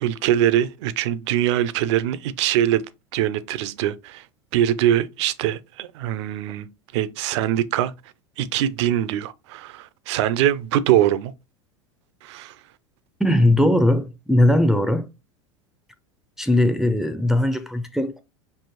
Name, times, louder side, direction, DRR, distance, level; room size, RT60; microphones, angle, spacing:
voice 1, 0.0-2.9 3.1-4.3 4.5-6.7 6.9-7.9 8.4-11.3 12.2-12.6, right 11 dB, 60° right, 0.5 m, -22 dB
voice 2, 13.2-15.1 16.4-18.2, left 1 dB, ahead, 0.4 m, -19 dB
5.4 x 2.5 x 2.9 m
hypercardioid pair, 85°, 17 cm